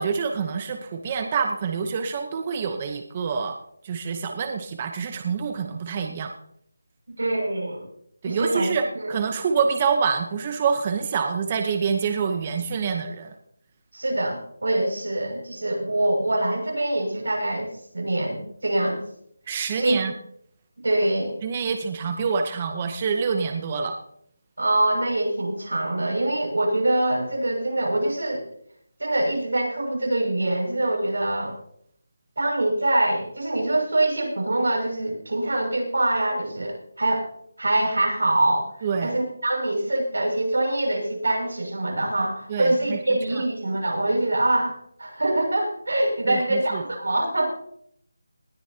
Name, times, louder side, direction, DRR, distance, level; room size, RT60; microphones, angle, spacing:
voice 1, 0.0-3.6 3.8-6.3 8.2-13.3 19.5-20.1 21.4-24.0 38.8-39.1 42.5-43.0 46.2-46.8, right 5 dB, 25° right, 6 dB, 0.8 m, -26 dB
voice 2, 7.1-7.8 8.2-8.7 8.9-9.1 13.9-17.7 17.9-19.0 19.7-20.1 20.8-21.4 24.6-28.4 29.0-31.5 32.4-37.2 37.6-38.7 39.0-47.5, right 1 dB, 90° right, 1 dB, 6.3 m, -24 dB
20.0 x 13.0 x 2.8 m, 0.69 s
figure-of-eight pair, 170°, 0 cm